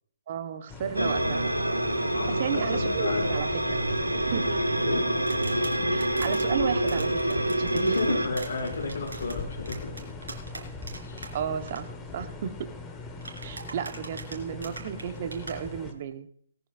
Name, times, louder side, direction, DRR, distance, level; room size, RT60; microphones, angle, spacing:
voice 1, 0.3-1.5 2.4-3.9 4.1-4.6 5.9-8.2 11.3-12.5 13.4-16.3, right 8 dB, 40° right, 7 dB, 1.3 m, -34 dB
sound 1, 0.7-15.9, left 3 dB, 15° left, 1.6 m, -40 dB
sound 2, 1.0-8.3, right 1 dB, 85° right, 1.5 m, -27 dB
voice 2, 2.1-3.2 4.8-5.1 5.6-5.9 7.7-9.9 11.0-11.3, left 3 dB, 55° left, -2 dB, 6.7 m, -32 dB
sound 3, 5.3-6.4 6.9-11.3 11.6-11.8 13.2-15.5, right 3 dB, 65° right, 3.5 m, -41 dB
19.0 x 13.5 x 2.6 m, 0.64 s
figure-of-eight pair, 135°, 0 cm